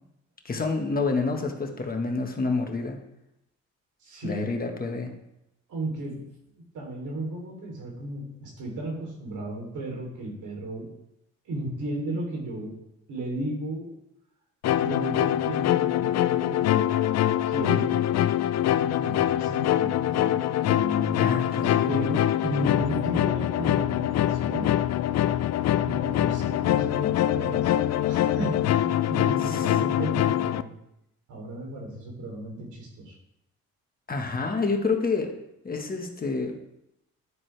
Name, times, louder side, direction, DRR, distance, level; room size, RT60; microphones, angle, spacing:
voice 1, 0.4-3.0 4.2-5.1 21.2-22.1 29.5-29.6 34.1-35.3 35.6-36.5, left 4 dB, 30° left, 3 dB, 1.5 m, -28 dB
voice 2, 4.0-4.4 5.7-6.3 6.7-10.9 11.4-12.8 13.1-13.9 14.8-18.0 18.8-24.7 25.8-30.7 31.3-33.2, right 1 dB, 75° right, 0 dB, 3.4 m, -34 dB
sound 1, 14.6-30.6, left 12 dB, 60° left, 0.5 m, -24 dB
10.0 x 9.6 x 3.4 m, 0.84 s
cardioid pair, 90°, 30 cm